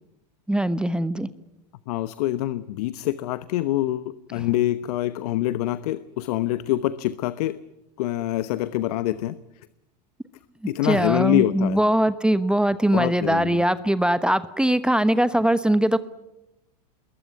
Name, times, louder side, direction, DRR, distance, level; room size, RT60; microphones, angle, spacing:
voice 1, 0.5-1.3 4.4-4.5 10.8-16.0, right 1 dB, 5° right, 13 dB, 1.0 m, -21 dB
voice 2, 1.9-7.6 8.0-9.4 10.7-11.8 12.9-13.6, left 14 dB, 65° left, 15 dB, 1.0 m, -25 dB
27.0 x 21.5 x 9.6 m, 0.93 s
hypercardioid pair, 90°, 21 cm